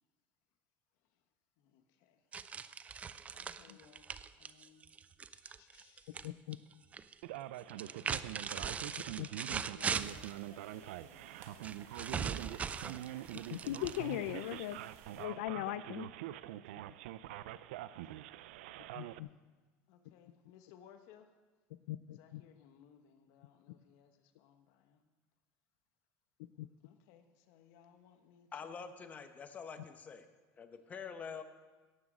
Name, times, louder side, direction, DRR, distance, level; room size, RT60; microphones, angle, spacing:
voice 1, 1.6-2.2 3.3-4.9 5.3-6.3 7.6-8.9 9.7-13.6 16.4-17.1 17.8-18.3 19.9-21.3 22.1-25.0 26.8-29.0, left 8 dB, 65° left, 7 dB, 1.2 m, -63 dB
sound 1, 2.3-6.3 6.5-7.1 7.7-10.4 11.6-14.3, right 6 dB, 20° right, 0.4 m, -40 dB
voice 2, 6.2-6.6 9.2-9.3 13.5-14.8 15.2-16.1 19.0-19.3 21.9-22.4 26.6-26.7, left 14 dB, 90° left, 13 dB, 0.4 m, -39 dB
Male speech man speaking, 7.2-19.2, right 14 dB, 90° right, 0.4 m, -45 dB
sound 2, 9.8-15.3, right 7 dB, 50° right, 1.4 m, -58 dB
voice 3, 28.5-30.3 30.6-31.4, left 6 dB, 25° left, 8 dB, 1.0 m, -46 dB
17.0 x 6.3 x 6.1 m, 1.3 s
supercardioid pair, 135°, 6 cm